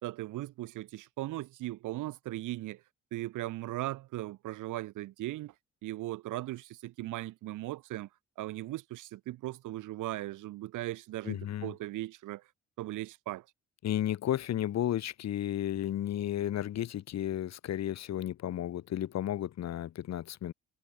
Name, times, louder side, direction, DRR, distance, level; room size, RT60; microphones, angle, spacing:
voice 1, 0.0-2.8 3.1-5.5 5.8-8.1 8.4-12.4 12.8-13.4, right 16 dB, 90° right, 2.0 m, -38 dB
voice 2, 11.2-11.7 13.8-20.5, left 11 dB, 60° left, 1.0 m, -33 dB
cardioid pair, 90°, 30 cm